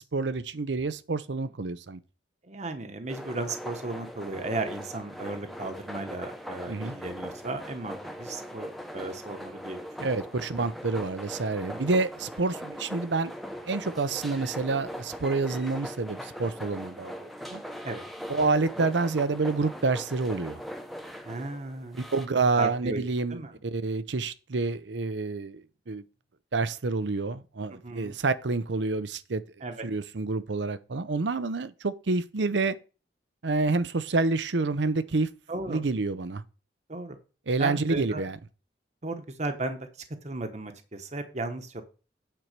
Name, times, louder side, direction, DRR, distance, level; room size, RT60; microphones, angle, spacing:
voice 1, 0.0-2.0 6.7-7.0 10.0-13.3 13.6-17.6 18.3-20.6 21.9-26.0 26.5-29.4 29.8-32.8 33.4-35.3 35.7-36.4 37.5-38.4, right 3 dB, 80° right, 0.7 m, -28 dB
voice 2, 2.4-10.1 11.7-11.8 17.8-18.0 21.2-22.1 22.5-23.0 23.3-23.5 27.7-28.1 29.6-29.8 35.5-35.8 36.9-37.2 37.6-38.2 39.0-39.9 40.2-41.8, right 2 dB, 40° right, 1.1 m, -35 dB
sound 1, 3.1-22.3, equal, ahead, 0.9 m, -40 dB
9.2 x 4.6 x 6.7 m
head